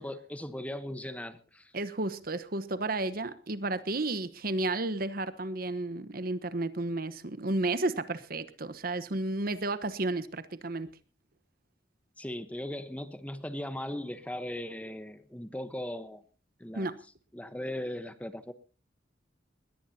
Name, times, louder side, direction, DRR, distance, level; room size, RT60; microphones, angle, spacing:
voice 1, 0.0-1.7 12.2-16.2 16.6-16.9 17.3-18.5, left 1 dB, 10° left, 1.0 m, -38 dB
voice 2, 1.7-10.9 16.7-17.0, right 2 dB, 55° right, 1.1 m, -32 dB
21.0 x 17.5 x 2.8 m
head